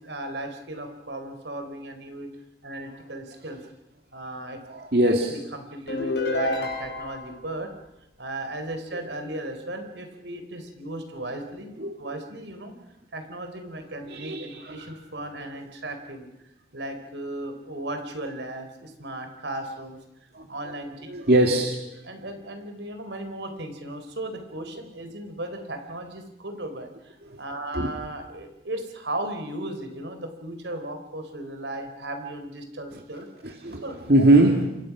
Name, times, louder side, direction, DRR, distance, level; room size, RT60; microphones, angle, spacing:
voice 1, 0.0-2.3 2.6-3.6 4.1-4.6 5.1-7.7 8.2-12.7 13.1-16.3 16.7-20.0 20.5-21.1 21.4-21.5 22.0-33.3 33.8-34.6, right 1 dB, 80° right, 6 dB, 4.2 m, -36 dB
voice 2, 4.7-5.3 11.8-12.0 14.1-14.9 20.3-20.5 21.1-21.8 27.3-27.4 27.7-27.9 33.4-33.8 34.1-34.7, right 1 dB, 60° right, 3 dB, 2.3 m, -21 dB
sound 1, 5.9-7.3, left 2 dB, 70° left, 5.8 m, -28 dB
29.0 x 24.0 x 6.2 m, 0.90 s
head